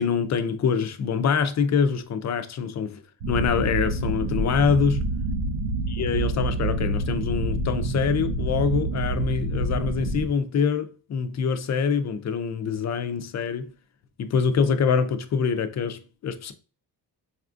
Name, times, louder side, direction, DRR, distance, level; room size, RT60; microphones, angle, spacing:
voice 1, 0.0-5.0 5.9-13.7 14.2-16.5, left 6 dB, 40° left, 0.4 m, -25 dB
sound 1, 3.2-10.3, right 2 dB, 70° right, 0.6 m, -27 dB
4.1 x 2.4 x 2.5 m
cardioid pair, 110°, 42 cm